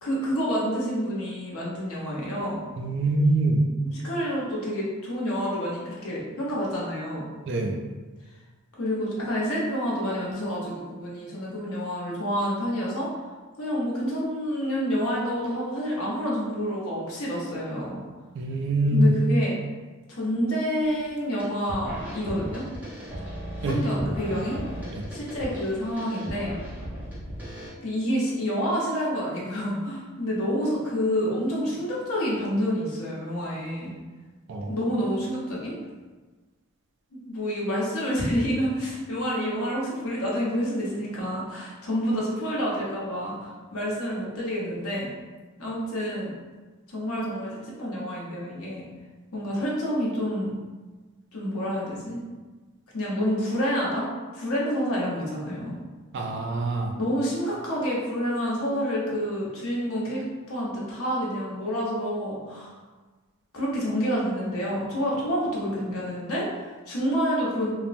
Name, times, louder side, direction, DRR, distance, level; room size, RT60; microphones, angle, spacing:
voice 1, 0.0-2.6 3.9-7.3 8.8-13.1 13.6-18.0 18.9-19.5 20.1-22.6 23.6-24.6 25.1-26.5 27.8-33.9 34.7-35.7 37.1-45.1 45.6-46.3 46.9-48.9 49.3-50.6 51.3-52.2 52.9-55.8 57.0-62.7 63.5-66.5 66.9-67.8, equal, 90° left, -5 dB, 0.8 m, -28 dB
voice 2, 2.8-3.6 7.5-7.8 18.4-19.1 23.6-23.8 24.9-25.0 34.5-34.7 56.1-56.9, right 1 dB, 55° right, 2 dB, 0.3 m, -24 dB
sound 1, 20.8-21.1 21.4-27.7, equal, 10° right, 0.6 m, -37 dB
3.1 x 2.0 x 2.5 m, 1.3 s
head